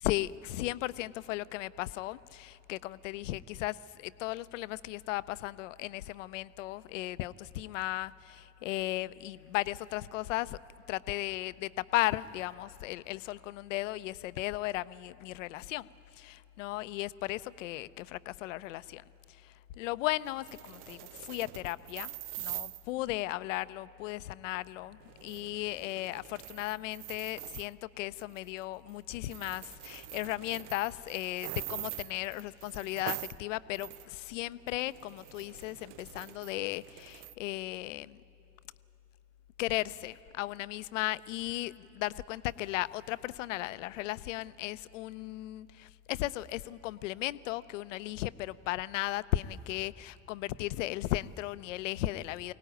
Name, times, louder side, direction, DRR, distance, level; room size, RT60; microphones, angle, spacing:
voice 1, 0.0-10.6 10.9-15.9 16.2-19.0 19.8-22.1 22.4-38.2 39.6-52.5, left 16 dB, 75° left, 17 dB, 0.5 m, -36 dB
sound 1, 20.2-22.8 25.0-27.7 28.2-28.6 28.9-29.0 29.3-33.4 33.7-34.1 34.5-37.3, right 15 dB, 65° right, 0.6 m, -44 dB
23.5 x 18.0 x 9.1 m, 3.0 s
figure-of-eight pair, 55°, 38 cm